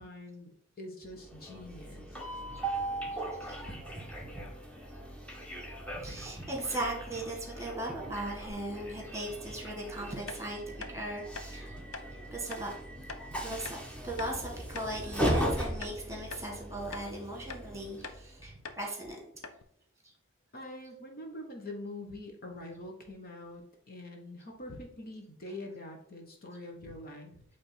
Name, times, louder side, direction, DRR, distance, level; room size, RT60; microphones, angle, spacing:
voice 1, 0.0-2.2 20.5-27.4, left 1 dB, 45° left, 1 dB, 1.3 m, -45 dB
Train, 1.1-18.4, right 1 dB, 5° left, 1.1 m, -38 dB
voice 2, 3.4-3.8 4.3-4.4 5.9-11.7 12.3-12.7 13.4-19.2 20.0-20.1, right 1 dB, 15° right, 0 dB, 2.0 m, -38 dB
sound 1, 10.3-10.4 10.8-10.9 11.3-11.5 11.9-12.1 12.5-12.7 13.1-13.2 13.7-13.8 14.2-14.4 14.8-15.5 15.8-16.0 16.3-16.5 16.9-17.1 17.5-17.7 18.0-18.2 18.7-18.8 19.1-19.2 19.4-19.6, left 4 dB, 75° left, 0.9 m, -43 dB
8.6 x 3.6 x 4.3 m, 0.71 s
head